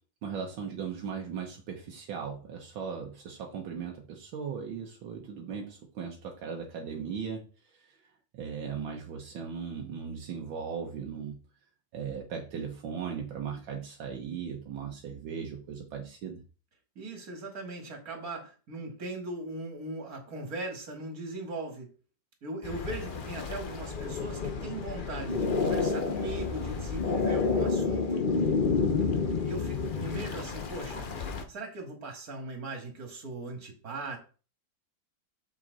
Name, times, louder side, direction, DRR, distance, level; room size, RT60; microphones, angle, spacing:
voice 1, 0.2-7.5 7.7-8.0 8.3-11.4 11.9-16.4, right 6 dB, 80° right, 1 dB, 1.8 m, -38 dB
voice 2, 17.0-21.9 22.4-28.2 29.4-34.2, right 2 dB, 50° right, 3 dB, 2.5 m, -39 dB
sound 1, 22.6-31.4, left 4 dB, 55° left, 0.5 m, -30 dB
6.9 x 6.1 x 4.0 m, 0.37 s
omnidirectional pair, 2.1 m